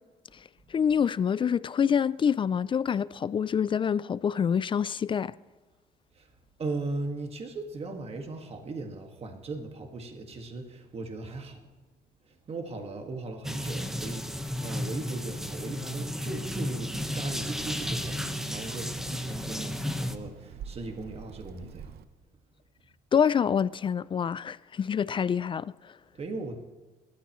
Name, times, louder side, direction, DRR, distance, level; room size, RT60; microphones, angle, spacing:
voice 1, 0.3-5.3 23.1-26.0, left 7 dB, 30° left, 0.3 m, -26 dB
voice 2, 6.1-11.7 12.2-22.0 26.1-26.6, right 3 dB, 35° right, 1.9 m, -38 dB
sound 1, 13.4-20.2, left 1 dB, ahead, 1.2 m, -33 dB
Child speech kid speaking, 16.4-22.0, right 8 dB, 65° right, 0.9 m, -47 dB
27.0 x 13.5 x 3.1 m
cardioid pair, 110°, 17 cm